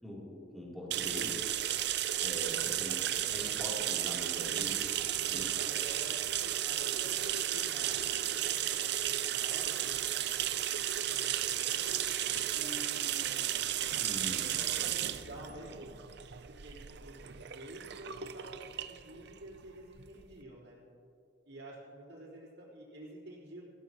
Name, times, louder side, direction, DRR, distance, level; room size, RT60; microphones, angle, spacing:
voice 1, 0.0-1.5 2.2-5.5 14.0-14.4 14.8-14.9, left 1 dB, ahead, -6 dB, 3.3 m, -43 dB
sound 1, 0.9-20.3, right 11 dB, 65° right, 0.6 m, -34 dB
voice 2, 5.5-10.5 11.1-11.9 12.5-13.6 14.3-15.9 16.6-17.1 17.5-20.8 21.5-23.6, right 1 dB, 85° right, -11 dB, 4.3 m, -49 dB
21.0 x 15.5 x 3.0 m, 2.4 s
head